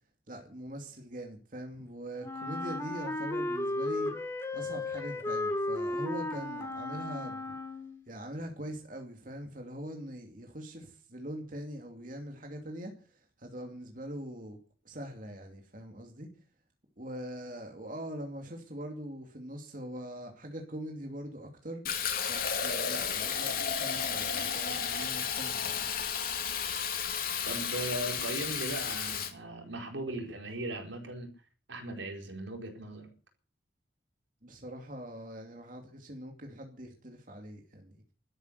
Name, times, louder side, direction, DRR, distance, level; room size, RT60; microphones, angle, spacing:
voice 1, 0.3-4.1 4.5-7.5 8.1-14.6 14.8-16.3 17.0-25.8 34.4-37.9, equal, 45° right, 2.6 m, -42 dB
Wind instrument woodwind instrument, 2.2-8.0, left 2 dB, 15° left, 2.1 m, -34 dB
Fill (with liquid), 21.8-29.3, left 7 dB, 50° left, 2.7 m, -33 dB
voice 2, 27.4-31.3 31.7-33.1, right 1 dB, 80° right, 4.4 m, -38 dB
13.0 x 11.0 x 8.1 m
head